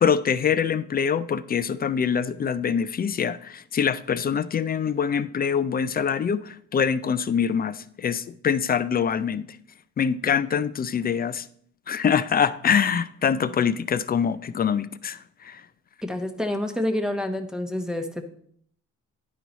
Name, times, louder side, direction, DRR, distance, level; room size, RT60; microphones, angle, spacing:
voice 1, 0.0-9.5 10.0-11.5 11.9-15.6, left 7 dB, 30° left, 0.4 m, -24 dB
voice 2, 16.0-18.3, left 1 dB, ahead, 0.8 m, -28 dB
10.5 x 4.6 x 4.0 m
cardioid pair, 90°, 30 cm